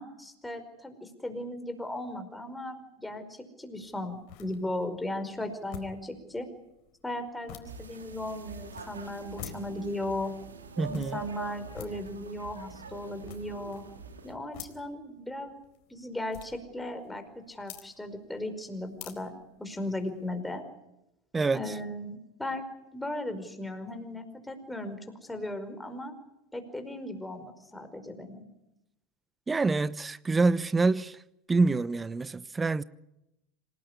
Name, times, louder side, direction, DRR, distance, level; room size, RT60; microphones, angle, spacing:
voice 1, 0.0-6.5 7.0-10.3 10.9-13.8 14.2-15.6 15.9-19.3 19.6-20.6 21.5-22.6 22.9-26.1 26.5-28.4, left 1 dB, 10° left, 5.1 m, -37 dB
sound 1, 3.7-20.3, left 10 dB, 60° left, 4.2 m, -51 dB
sound 2, 7.6-14.3, right 5 dB, 90° right, 2.4 m, -45 dB
voice 2, 10.8-11.2 21.3-21.6 29.5-31.2 31.5-32.8, right 3 dB, 15° right, 0.9 m, -26 dB
26.5 x 18.5 x 9.9 m
hypercardioid pair, 85°, 0 cm